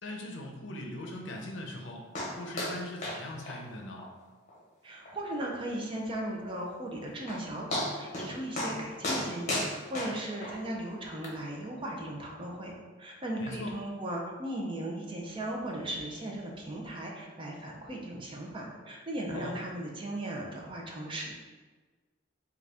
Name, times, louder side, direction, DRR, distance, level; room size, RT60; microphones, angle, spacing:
voice 1, 0.0-2.0 2.4-4.0 13.4-13.7 19.3-19.5, left 1 dB, 70° left, 1 dB, 0.6 m, -40 dB
sound 1, 2.1-2.3 2.6-2.8 3.0-3.2 3.5-3.6 4.0-4.1 4.5-4.6 5.0-5.1 6.8-6.9 7.3-7.4 7.7-8.3 8.6-8.8 9.0-10.5 11.2-11.3, left 1 dB, 40° left, 0.8 m, -33 dB
voice 2, 4.8-21.3, right 1 dB, 25° right, -1 dB, 0.5 m, -37 dB
3.8 x 2.4 x 3.4 m, 1.4 s
head